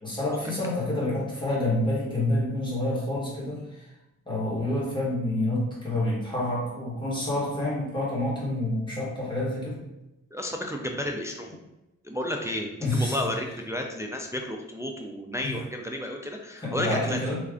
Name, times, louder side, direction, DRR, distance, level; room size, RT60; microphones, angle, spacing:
voice 1, 0.0-3.9 4.3-9.8 12.8-13.2 15.4-15.5 16.6-17.4, left 1 dB, 15° left, -7 dB, 1.4 m, -28 dB
voice 2, 10.3-11.6 12.0-17.2, left 1 dB, 10° right, 1 dB, 0.3 m, -32 dB
3.2 x 2.4 x 3.6 m, 0.94 s
wide cardioid pair, 110°, 31 cm